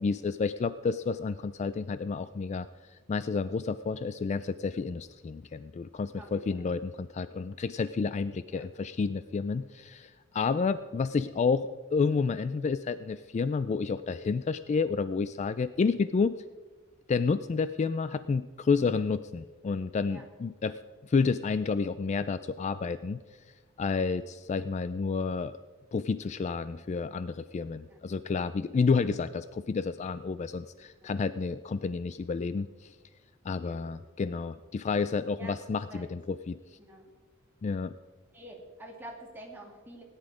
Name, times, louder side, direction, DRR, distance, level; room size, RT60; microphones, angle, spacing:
voice 1, 0.0-2.7 3.1-16.4 17.1-20.8 21.1-23.2 23.8-25.5 25.9-33.0 33.4-36.6 37.6-37.9, left 4 dB, 35° left, 14 dB, 0.3 m, -30 dB
voice 2, 6.2-6.6 8.5-8.7 20.1-20.3 20.6-20.7 24.0-24.2 27.9-28.0 31.0-31.1 33.6-33.9 35.4-35.5 35.9-36.1 36.9-37.1 38.3-40.0, right 1 dB, 10° right, -2 dB, 2.5 m, -47 dB
17.5 x 9.8 x 4.9 m, 1.4 s
head